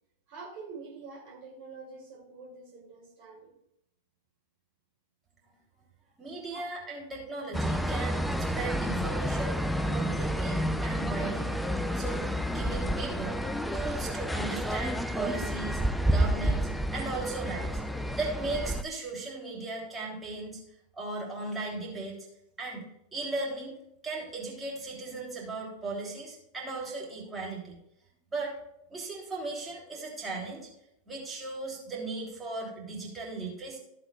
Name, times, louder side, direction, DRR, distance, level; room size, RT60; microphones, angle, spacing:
voice 1, 0.3-3.6 6.5-6.6, right 4 dB, 50° right, -4 dB, 2.8 m, -46 dB
voice 2, 6.2-9.5 9.8-11.5 11.9-13.4 13.7-15.8 16.1-17.8 18.2-20.6 21.0-22.2 22.6-22.9 23.1-23.7 24.0-27.8 28.3-28.5 28.9-30.7 31.1-33.8, right 3 dB, 15° right, -3 dB, 3.3 m, -37 dB
sound 1, 7.5-18.8, equal, ahead, 0.5 m, -30 dB
14.0 x 7.7 x 2.4 m, 0.78 s
figure-of-eight pair, 90°, 0 cm